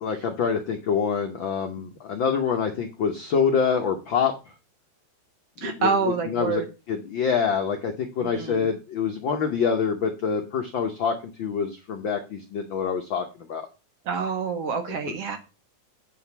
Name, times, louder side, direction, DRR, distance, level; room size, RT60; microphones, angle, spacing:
voice 1, 0.0-4.5 5.6-6.6 6.9-13.7, left 6 dB, 75° left, 5 dB, 1.1 m, -26 dB
voice 2, 5.6-6.7 8.2-8.7 14.1-15.4, right 5 dB, 60° right, 6 dB, 1.8 m, -27 dB
9.3 x 3.9 x 7.1 m, 0.30 s
omnidirectional pair, 3.6 m